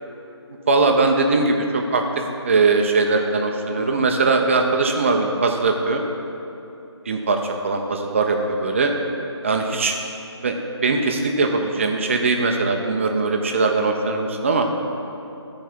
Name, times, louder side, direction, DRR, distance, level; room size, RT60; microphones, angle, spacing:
voice 1, 0.7-2.0 2.4-6.0 7.1-7.4 7.6-8.9 9.4-10.0 10.4-10.5 10.8-14.7, right 3 dB, 25° right, 3 dB, 0.5 m, -20 dB
12.5 x 4.7 x 4.5 m, 2.8 s
figure-of-eight pair, 160°, 15 cm